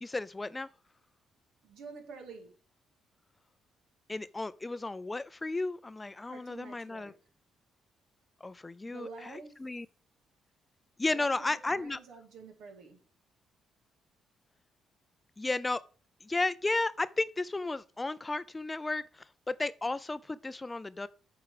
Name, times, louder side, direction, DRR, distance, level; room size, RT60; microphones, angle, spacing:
voice 1, 0.0-0.7 4.1-7.1 8.4-9.9 11.0-12.0 15.4-15.8 16.2-21.1, left 2 dB, 20° left, 0.4 m, -33 dB
voice 2, 1.6-2.5 6.3-7.2 8.8-9.6 11.1-13.0, right 4 dB, 85° right, 2.4 m, -49 dB
8.7 x 4.7 x 4.8 m
cardioid pair, 90°, 0 cm